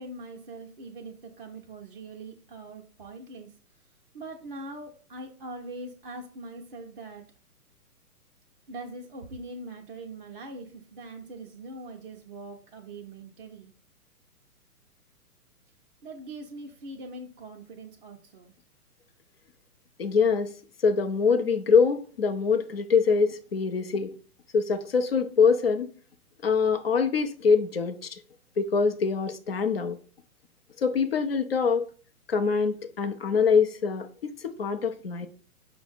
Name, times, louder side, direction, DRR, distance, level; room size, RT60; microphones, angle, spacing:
voice 1, 0.0-3.5 4.1-7.2 8.7-13.7 16.0-18.5, right 2 dB, 40° right, 0.5 m, -42 dB
voice 2, 20.0-20.5 20.8-24.1 24.5-25.9 26.4-28.2 28.6-30.0 30.8-31.8 32.3-35.3, left 5 dB, 45° left, 0.4 m, -24 dB
5.5 x 2.0 x 3.9 m
figure-of-eight pair, 125°, 46 cm